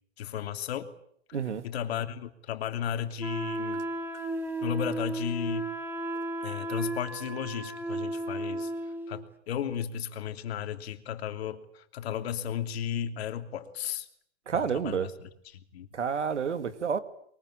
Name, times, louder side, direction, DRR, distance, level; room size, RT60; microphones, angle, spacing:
voice 1, 0.2-0.9 1.6-3.9 4.6-5.7 6.4-8.7 9.1-14.1 14.5-15.9, left 9 dB, 60° left, 3.0 m, -34 dB
voice 2, 1.3-1.6 14.5-15.1 15.9-17.0, right 6 dB, 90° right, 2.3 m, -29 dB
Wind instrument woodwind instrument, 3.2-9.1, right 2 dB, 5° right, 2.9 m, -34 dB
23.0 x 22.0 x 9.9 m
hypercardioid pair, 125°, 34 cm